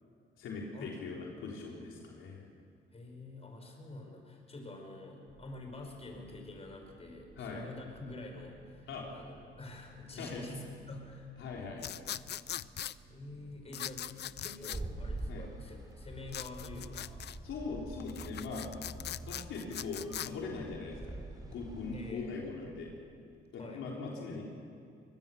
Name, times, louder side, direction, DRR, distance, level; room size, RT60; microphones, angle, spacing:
voice 1, 0.4-2.4 7.4-7.6 8.9-9.1 10.2-10.4 11.4-11.9 15.3-15.4 17.4-18.7 19.3-21.2 21.5-22.9 23.5-24.4, left 4 dB, 80° left, -2 dB, 3.8 m, -41 dB
voice 2, 2.9-11.3 13.1-17.2 21.9-22.3 23.6-23.9, left 2 dB, 30° left, 2 dB, 5.5 m, -47 dB
sound 1, 5.2-22.8, right 1 dB, 5° left, 7.8 m, -59 dB
sound 2, 11.8-13.0 13.7-14.8 16.3-17.4 18.0-20.3, left 11 dB, 60° left, 0.5 m, -41 dB
sound 3, 14.7-22.1, right 2 dB, 20° right, 3.2 m, -45 dB
24.0 x 20.0 x 7.1 m, 2.4 s
cardioid pair, 90°, 20 cm